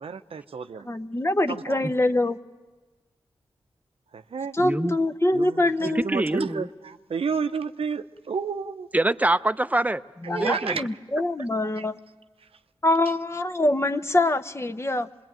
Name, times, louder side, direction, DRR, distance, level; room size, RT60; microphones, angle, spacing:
voice 1, 0.0-0.9 1.5-1.9 4.1-4.5 5.3-8.9 10.2-10.8 11.8-11.9, right 5 dB, 70° right, 9 dB, 0.7 m, -31 dB
voice 2, 0.9-2.4 4.5-6.1 10.3-12.0 12.8-15.1, left 1 dB, 25° left, 10 dB, 0.9 m, -24 dB
voice 3, 4.6-5.0 5.9-6.7 8.9-10.0 10.4-10.7, right 2 dB, 15° right, 13 dB, 0.7 m, -24 dB
24.0 x 21.0 x 9.1 m, 1.3 s
cardioid pair, 45°, 10 cm